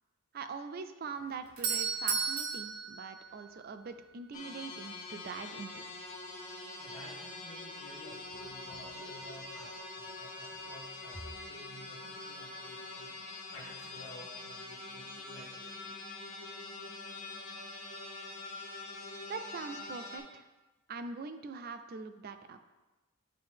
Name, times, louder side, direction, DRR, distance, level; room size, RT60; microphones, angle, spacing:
voice 1, 0.3-5.7 19.3-20.5 20.9-22.6, right 4 dB, 45° right, 10 dB, 0.3 m, -42 dB
Doorbell, 1.2-4.0, right 5 dB, 85° right, 0.9 m, -35 dB
sound 1, 4.3-20.2, left 3 dB, 40° left, 1.1 m, -45 dB
voice 2, 6.8-13.1 13.5-15.7, left 1 dB, 80° left, -3 dB, 1.5 m, -52 dB
8.7 x 3.5 x 3.6 m, 1.2 s
head